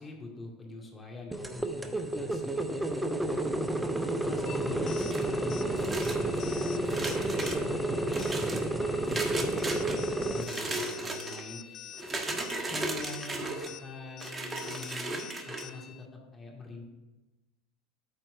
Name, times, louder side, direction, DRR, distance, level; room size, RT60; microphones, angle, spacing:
voice 1, 0.0-3.4 4.1-6.8 7.3-12.0 12.2-16.1 16.3-16.9, left 2 dB, 25° left, -1 dB, 2.3 m, -44 dB
sound 1, 1.3-10.4, right 1 dB, 10° right, 0.7 m, -31 dB
sound 2, 4.5-16.1, left 11 dB, 50° left, 0.5 m, -47 dB
sound 3, 5.0-5.4 5.8-6.4 6.8-7.6 8.1-8.6 9.1-10.0 10.4-11.4 12.0-13.7 14.2-15.6, right 2 dB, 25° right, 1.3 m, -35 dB
8.7 x 4.4 x 6.6 m, 1.1 s
hypercardioid pair, 85°, 0 cm